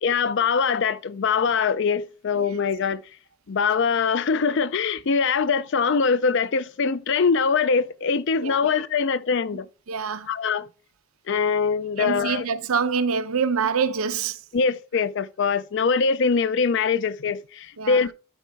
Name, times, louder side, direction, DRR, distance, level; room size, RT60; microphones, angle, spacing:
voice 1, 0.0-3.0 3.5-9.7 10.3-10.7 11.3-12.4 14.5-18.1, left 5 dB, 55° left, 0.4 m, -23 dB
voice 2, 9.9-10.3 12.0-14.4 17.8-18.0, right 6 dB, 75° right, 0.7 m, -25 dB
12.0 x 4.6 x 3.5 m
head